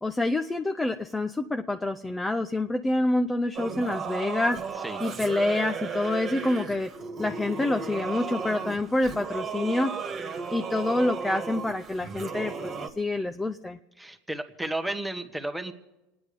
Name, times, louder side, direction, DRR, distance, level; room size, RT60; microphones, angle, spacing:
voice 1, 0.0-4.6 5.0-6.9 7.2-9.9 10.5-12.7 13.0-13.8, left 2 dB, 10° left, 6 dB, 0.6 m, -27 dB
Singing / Musical instrument, 3.5-12.9, right 5 dB, 35° right, 1.6 m, -35 dB
voice 2, 14.0-15.7, right 1 dB, 5° right, 7 dB, 1.3 m, -33 dB
27.0 x 9.8 x 5.1 m, 0.99 s
supercardioid pair, 125°, 0 cm